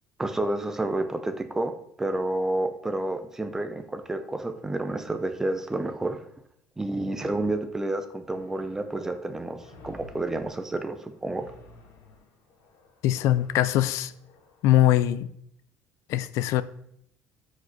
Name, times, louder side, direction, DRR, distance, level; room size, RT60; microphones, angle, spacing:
voice 1, 0.2-1.7 2.0-6.2 6.8-11.5, right 2 dB, 10° right, 0.6 m, -30 dB
sound 1, 8.3-14.7, left 2 dB, 80° left, 2.5 m, -52 dB
voice 2, 13.0-14.1 14.6-15.3 16.1-16.6, left 13 dB, 60° left, 0.5 m, -22 dB
13.0 x 5.2 x 4.0 m
cardioid pair, 175°, 6 cm